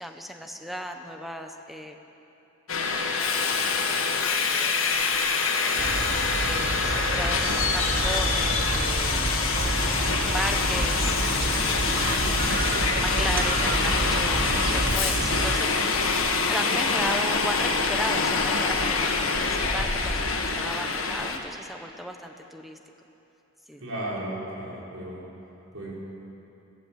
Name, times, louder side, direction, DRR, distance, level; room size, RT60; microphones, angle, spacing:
voice 1, 0.0-2.0 4.5-4.8 6.3-9.3 10.3-12.1 12.9-16.0 16.5-22.8 23.7-23.9, equal, ahead, 4 dB, 1.2 m, -35 dB
Subway metro underground, 2.7-21.4, left 4 dB, 90° left, 1.8 m, -25 dB
sound 1, 5.8-15.6, right 2 dB, 45° right, 1.0 m, -29 dB
voice 2, 23.8-25.3 25.7-25.9, right 1 dB, 90° right, -5 dB, 5.7 m, -35 dB
22.5 x 15.5 x 7.7 m, 3.0 s
head